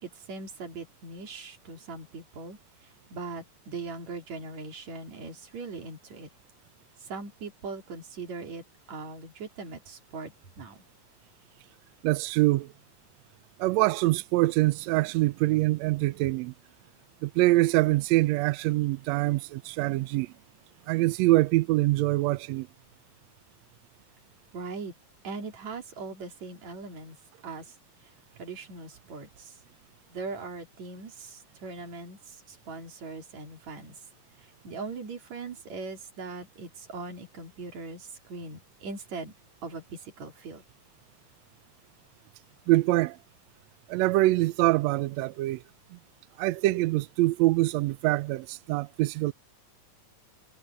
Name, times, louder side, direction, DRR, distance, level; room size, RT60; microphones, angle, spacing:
voice 1, 0.0-2.6 3.1-6.3 7.0-10.8 24.5-24.9 25.2-27.2 27.4-27.7 28.4-29.6 30.1-33.9 34.4-39.3 39.6-40.6, right 4 dB, 55° right, 4.2 m, -40 dB
voice 2, 12.0-12.7 13.6-16.5 17.2-20.3 20.9-22.7 42.7-43.2 43.9-45.6 45.9-46.0 46.4-49.3, right 19 dB, 90° right, 1.5 m, -24 dB
omnidirectional pair, 3.8 m